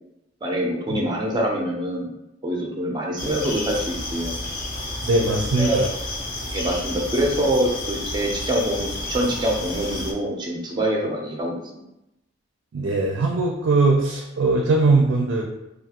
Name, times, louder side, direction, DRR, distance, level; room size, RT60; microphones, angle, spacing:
voice 1, 0.4-2.1 2.4-4.3 5.6-5.9 6.5-11.6, right 1 dB, 25° right, -1 dB, 0.5 m, -25 dB
sound 1, 3.2-10.1, left 2 dB, 50° left, 0.5 m, -31 dB
voice 2, 5.0-5.9 12.7-15.4, right 3 dB, 85° right, 0 dB, 0.4 m, -20 dB
2.3 x 2.3 x 2.8 m, 0.89 s
head